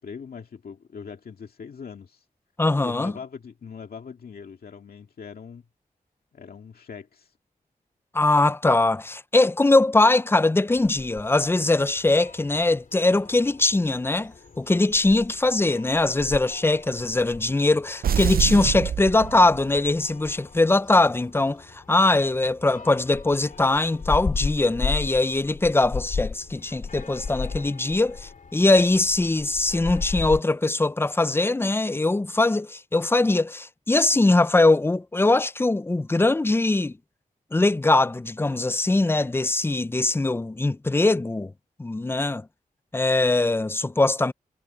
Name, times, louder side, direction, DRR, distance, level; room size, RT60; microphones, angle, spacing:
voice 1, 0.0-2.3 2.8-5.6 6.3-7.3, left 6 dB, 80° left, 2.0 m, -41 dB
voice 2, 2.6-3.1 8.1-36.9 37.5-41.5 41.8-42.5 42.9-44.3, left 2 dB, 15° left, 0.4 m, -21 dB
sound 1, 10.7-30.4, left 5 dB, 60° left, 2.9 m, -36 dB
sound 2, 18.0-19.9, right 8 dB, 75° right, 0.5 m, -26 dB
wide cardioid pair, 120°, 15 cm